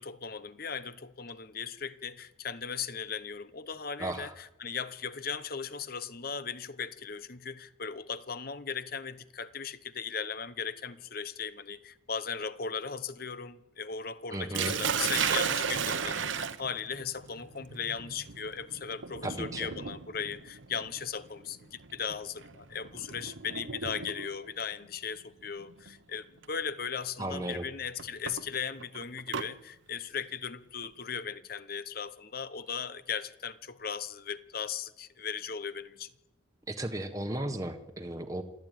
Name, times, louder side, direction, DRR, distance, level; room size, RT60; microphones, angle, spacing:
voice 1, 0.0-36.1, left 6 dB, 50° left, 1.0 m, -37 dB
voice 2, 4.0-4.3 14.3-14.7 19.2-19.7 27.2-27.6 36.7-38.4, right 1 dB, 15° right, 1.2 m, -35 dB
Sink (filling or washing), 14.5-24.5 25.6-25.9 26.4-26.5 28.0-29.5, right 6 dB, 70° right, 1.0 m, -35 dB
26.5 x 12.5 x 9.2 m
head